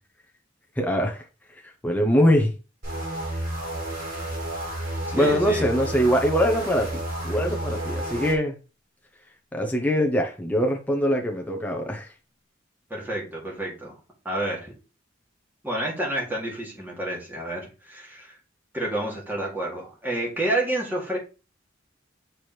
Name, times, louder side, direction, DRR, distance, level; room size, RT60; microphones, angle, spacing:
voice 1, 0.8-1.2 1.6-2.6 5.1-8.5 9.5-12.1, equal, 10° left, 0.8 m, -23 dB
sound 1, 2.8-8.4, right 1 dB, 45° right, 3.6 m, -31 dB
voice 2, 5.1-5.6 12.9-13.9 14.2-14.7 15.6-18.4 18.7-21.2, right 1 dB, 10° right, 2.4 m, -29 dB
6.8 x 4.5 x 3.2 m
head